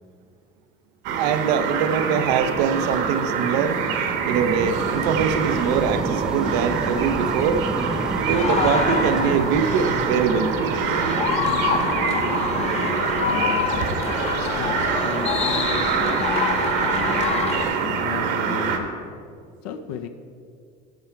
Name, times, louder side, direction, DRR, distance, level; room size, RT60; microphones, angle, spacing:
sound 1, 1.0-18.8, right 6 dB, 65° right, 1.1 m, -25 dB
voice 1, 1.2-3.8 4.2-7.6 8.3-10.5, right 7 dB, 90° right, 10 dB, 0.6 m, -23 dB
sound 2, 2.9-14.2 14.8-14.9, right 1 dB, 5° right, 0.3 m, -33 dB
sound 3, 8.3-17.6, left 6 dB, 30° left, 0.6 m, -27 dB
voice 2, 12.5-13.7 14.5-18.9 19.6-20.1, left 8 dB, 90° left, 7 dB, 0.6 m, -35 dB
14.0 x 4.8 x 4.4 m, 2.3 s
cardioid pair, 145°, 20 cm